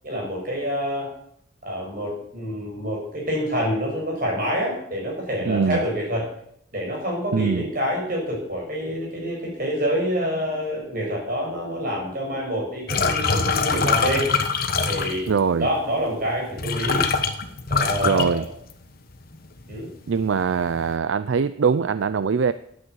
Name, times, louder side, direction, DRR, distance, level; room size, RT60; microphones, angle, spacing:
voice 1, 0.0-1.1 1.6-6.3 6.7-14.3 14.8-15.3 15.6-17.0 17.7-18.5 19.7-19.9, equal, 45° right, -1 dB, 6.4 m, -27 dB
voice 2, 5.5-5.8 7.3-7.7 15.3-15.7 18.0-18.4 20.1-22.5, right 5 dB, 70° right, 14 dB, 0.4 m, -22 dB
sound 1, 12.9-15.4 16.3-16.4 16.6-19.0 19.3-19.8 20.2-20.8, left 5 dB, 45° left, 1.2 m, -23 dB
11.0 x 9.3 x 8.0 m, 0.71 s
head